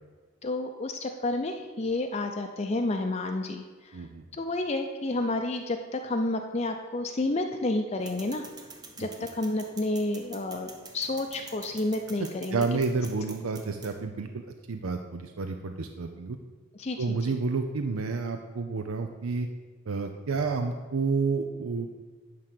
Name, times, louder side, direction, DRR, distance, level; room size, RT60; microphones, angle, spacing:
voice 1, 0.4-4.0 4.3-8.5 9.0-12.6 16.7-17.2, left 2 dB, 30° left, 4 dB, 0.5 m, -30 dB
voice 2, 3.9-4.2 9.0-9.1 12.5-16.4 17.0-19.5 19.9-22.0, right 4 dB, 85° right, 6 dB, 0.6 m, -30 dB
sound 1, 8.0-14.0, right 4 dB, 20° right, 0.7 m, -48 dB
11.0 x 3.8 x 7.6 m, 1.4 s
head